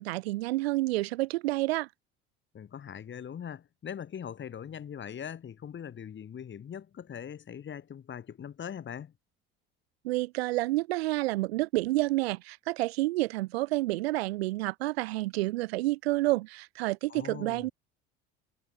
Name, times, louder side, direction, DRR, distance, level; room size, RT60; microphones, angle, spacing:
voice 1, 0.0-1.9 10.0-17.7, right 19 dB, 80° right, 0.9 m, -29 dB
voice 2, 2.5-9.1 17.1-17.7, left 8 dB, 35° left, 2.6 m, -41 dB
hypercardioid pair, 70°, 31 cm